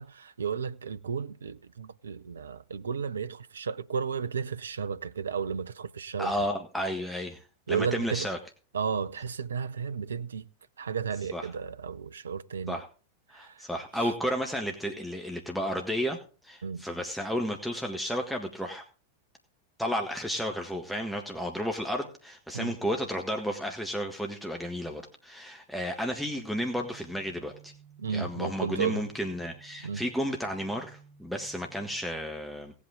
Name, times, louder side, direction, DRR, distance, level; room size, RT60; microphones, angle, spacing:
voice 1, 0.0-6.3 7.7-8.3 8.7-10.4 10.8-12.8 13.4-13.5 14.0-14.1 16.6-16.9 22.5-22.8 28.0-29.0 29.8-30.0, right 6 dB, 70° right, 0.6 m, -33 dB
voice 2, 6.2-7.4 7.7-8.4 11.3-11.5 12.7-12.9 13.3-16.2 16.4-18.8 19.8-27.7 28.1-32.7, equal, ahead, 1.6 m, -32 dB
sound 1, 26.4-31.9, right 6 dB, 25° right, 6.6 m, -55 dB
18.0 x 8.3 x 3.7 m
figure-of-eight pair, 90°, 0 cm